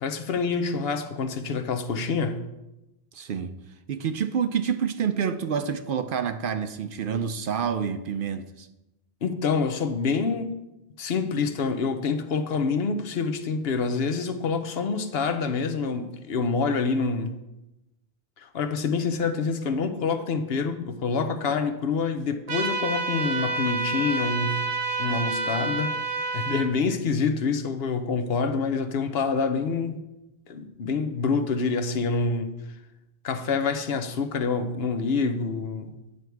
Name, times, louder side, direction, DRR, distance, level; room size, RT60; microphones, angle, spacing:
voice 1, 0.0-2.4 9.2-10.6 11.0-17.3 18.4-24.6 25.0-25.9 26.3-30.0 30.5-32.5 33.2-35.9, left 4 dB, 70° left, 1.0 m, -26 dB
voice 2, 3.1-3.6 3.9-8.7, right 7 dB, 60° right, 0.7 m, -28 dB
sound 1, 22.5-26.7, right 3 dB, 90° right, 1.7 m, -28 dB
9.8 x 6.9 x 4.6 m
omnidirectional pair, 1.1 m